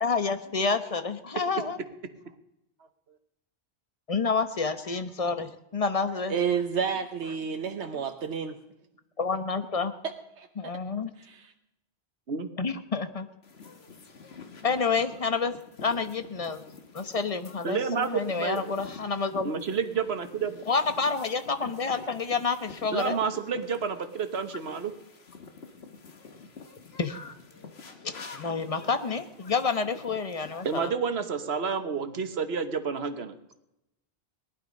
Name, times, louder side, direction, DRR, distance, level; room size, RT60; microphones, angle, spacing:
voice 1, 0.0-1.8 4.1-6.3 7.9-8.0 9.2-9.9 10.6-11.1 12.6-13.3 14.6-15.6 15.8-16.6 16.9-19.5 20.7-23.2 27.0-27.3 28.0-30.9, left 4 dB, 35° left, 10 dB, 1.0 m, -29 dB
voice 2, 6.3-8.6 10.0-10.5 11.2-11.5, right 7 dB, 85° right, 6 dB, 1.2 m, -30 dB
sound 1, 13.4-30.9, left 4 dB, 70° left, 1.7 m, -48 dB
voice 3, 17.6-18.7 19.4-20.6 22.9-24.9 30.6-33.3, right 6 dB, 70° right, 9 dB, 1.4 m, -30 dB
19.0 x 11.5 x 5.2 m, 0.87 s
omnidirectional pair, 1.1 m